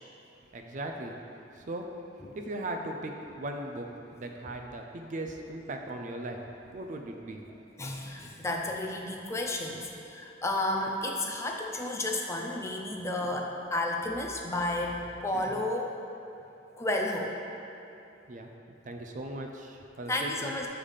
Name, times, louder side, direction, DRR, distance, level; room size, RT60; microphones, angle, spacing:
voice 1, 0.5-1.2 1.5-2.0 2.3-6.4 6.7-7.4 18.3-18.5 18.8-20.5, right 1 dB, 45° right, 3 dB, 0.4 m, -38 dB
voice 2, 7.8-15.9 16.8-17.4 20.1-20.7, left 1 dB, 15° left, 1 dB, 0.4 m, -32 dB
6.6 x 3.4 x 5.5 m, 2.8 s
head